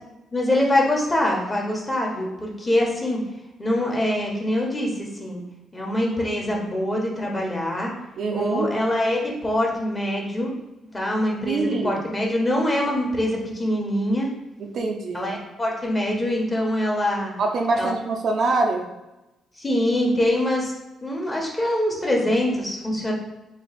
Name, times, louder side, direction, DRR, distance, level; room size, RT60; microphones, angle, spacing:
voice 1, 0.3-3.2 3.6-5.4 5.7-7.9 8.3-10.5 10.9-14.3 15.1-17.3 17.7-17.9 19.6-20.7 21.0-23.1, left 1 dB, 20° left, -1 dB, 1.2 m, -24 dB
voice 2, 8.2-8.7 11.4-12.0 14.6-15.3 17.4-18.9, right 3 dB, 60° right, 2 dB, 0.6 m, -24 dB
4.0 x 2.3 x 4.1 m, 0.99 s
cardioid pair, 90°, 0 cm